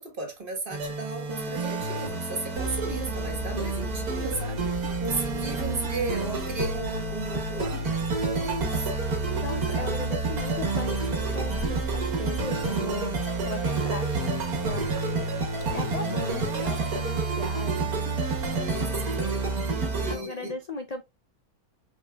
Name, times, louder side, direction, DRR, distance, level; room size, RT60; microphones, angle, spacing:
voice 1, 0.0-8.9 9.8-9.9 15.4-15.9 18.5-18.9 19.2-19.3 20.0-20.6, right 2 dB, 35° right, 2.1 m, -35 dB
sound 1, 0.7-20.2, right 3 dB, 75° right, 1.8 m, -29 dB
Engine starting, 2.5-15.8, left 7 dB, 65° left, 1.3 m, -41 dB
voice 2, 9.4-18.6 19.8-21.0, left 3 dB, 85° left, 0.3 m, -38 dB
5.5 x 4.1 x 2.3 m
omnidirectional pair, 1.6 m